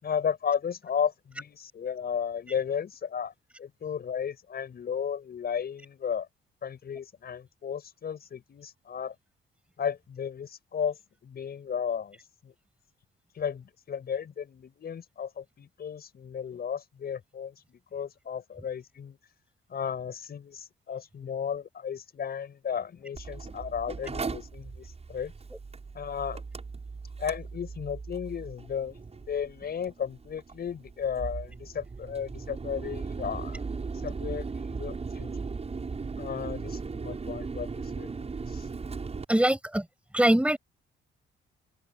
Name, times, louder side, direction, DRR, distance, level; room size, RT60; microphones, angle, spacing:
voice 1, 0.0-3.3 3.6-6.3 6.6-9.1 9.8-11.0 11.2-12.2 12.4-12.5 13.3-19.2 19.7-25.3 25.9-26.4 27.2-29.0 29.3-33.6 33.9-35.3 36.2-38.7, left 7 dB, 50° left, 6.7 m, -34 dB
Mechanical fan, 23.2-39.2, right 4 dB, 30° right, 7.7 m, -38 dB
voice 2, 39.3-39.8 40.1-40.6, right 1 dB, 5° right, 6.7 m, -22 dB
open air
cardioid pair, 90°, 20 cm